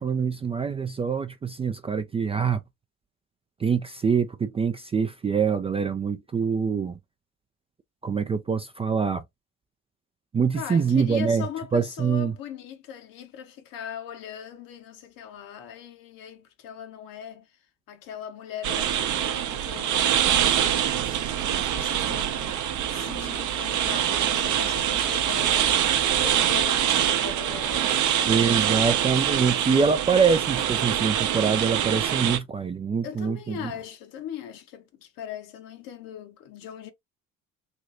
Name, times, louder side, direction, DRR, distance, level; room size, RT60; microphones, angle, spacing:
voice 1, 0.0-2.6 3.6-7.0 8.0-9.2 10.3-11.4 11.7-12.3 28.2-33.6, right 6 dB, 15° right, 0.3 m, -24 dB
voice 2, 10.5-17.6 17.9-25.7 26.1-29.7 33.0-36.9, left 9 dB, 60° left, 1.0 m, -40 dB
sound 1, 18.6-32.4, right 10 dB, 50° right, 0.7 m, -24 dB
3.3 x 2.7 x 2.5 m
figure-of-eight pair, 50°, 38 cm